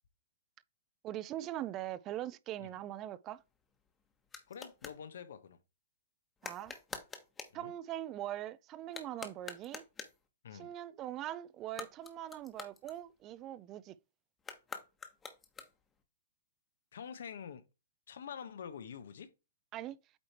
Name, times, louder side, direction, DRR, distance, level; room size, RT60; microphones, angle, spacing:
voice 1, 1.0-3.4 6.4-6.7 7.5-9.8 10.6-14.0 19.7-20.0, right 13 dB, 30° right, 0.4 m, -41 dB
sound 1, 3.3-5.0 6.4-7.6 8.8-10.3 11.6-13.4 14.4-16.0, left 5 dB, 15° left, 1.2 m, -48 dB
voice 2, 4.5-5.6 7.5-7.7 10.4-10.7 16.9-17.6 18.1-19.3, left 7 dB, 75° left, 1.0 m, -46 dB
8.5 x 3.2 x 4.3 m
hypercardioid pair, 135°, 0 cm